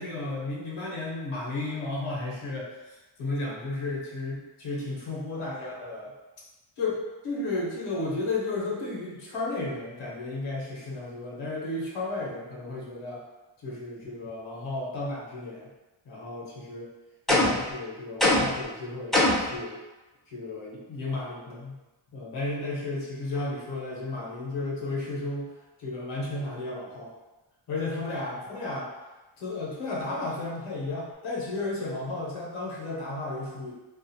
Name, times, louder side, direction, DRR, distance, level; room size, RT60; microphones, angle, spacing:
voice 1, 0.0-6.1 6.8-13.2 13.6-15.7 16.0-16.9 17.3-19.8 20.3-21.8 22.1-25.5 25.8-27.1 27.7-28.9 29.4-33.7, left 2 dB, 85° left, -4 dB, 0.9 m, -33 dB
sound 1, 17.3-17.7 18.2-18.6 19.1-19.6, left 1 dB, ahead, 0.5 m, -22 dB
2.5 x 2.4 x 2.7 m, 1.1 s
cardioid pair, 70°, 49 cm